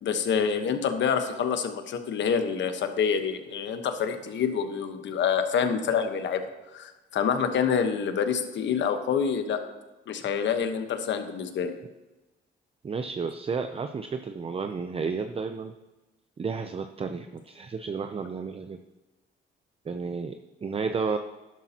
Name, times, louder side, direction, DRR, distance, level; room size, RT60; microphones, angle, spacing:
voice 1, 0.0-6.4 6.7-9.6 10.1-11.7, left 7 dB, 70° left, 7 dB, 1.2 m, -27 dB
voice 2, 12.8-15.7 16.4-18.8 19.9-21.2, right 5 dB, 30° right, 7 dB, 0.6 m, -32 dB
12.0 x 11.5 x 2.9 m, 1.1 s
cardioid pair, 90°, 20 cm